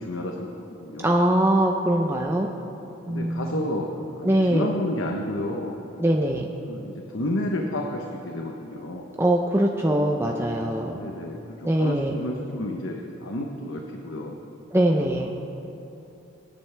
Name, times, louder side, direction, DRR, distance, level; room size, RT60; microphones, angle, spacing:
voice 1, 0.0-1.1 3.1-5.8 6.7-9.2 10.9-14.4 15.2-15.3, left 1 dB, 85° left, 1 dB, 1.0 m, -31 dB
voice 2, 1.0-2.5 3.1-3.5 4.2-4.7 6.0-6.5 9.2-11.0 11.6-12.2 14.7-15.3, right 1 dB, 15° right, 0 dB, 0.6 m, -22 dB
24.5 x 10.0 x 3.4 m, 2.9 s
head